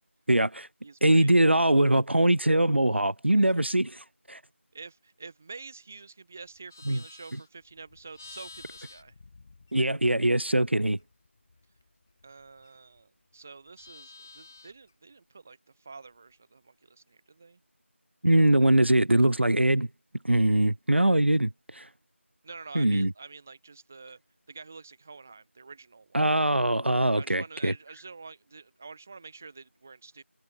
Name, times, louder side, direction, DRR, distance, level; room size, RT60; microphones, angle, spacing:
voice 1, 0.3-0.7 1.0-4.4 6.9-7.0 9.7-11.0 18.2-19.9 20.2-21.9 22.7-23.1 26.1-27.7, right 1 dB, 60° right, 1.2 m, -22 dB
voice 2, 0.8-1.3 3.4-3.5 4.7-9.1 12.2-17.6 18.3-18.4 22.4-24.2 24.5-26.2 27.1-30.2, right 4 dB, 10° right, 3.3 m, -47 dB
Livestock farm animals working animals, 6.4-10.2 10.5-13.0 13.3-14.9, left 3 dB, 10° left, 4.8 m, -52 dB
figure-of-eight pair, 180°, 7 cm